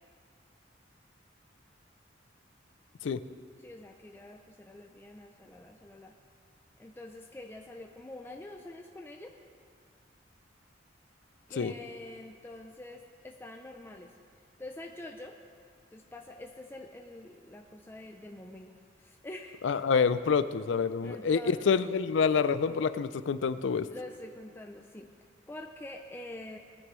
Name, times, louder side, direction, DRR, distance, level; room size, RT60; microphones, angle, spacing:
voice 1, 3.6-6.1 6.8-9.3 11.5-14.2 14.6-15.4 15.9-19.6 21.0-21.8 23.8-26.6, left 1 dB, 10° left, 2 dB, 0.5 m, -46 dB
voice 2, 19.6-23.9, left 5 dB, 70° left, 13 dB, 0.4 m, -27 dB
19.0 x 9.6 x 3.2 m, 2.1 s
head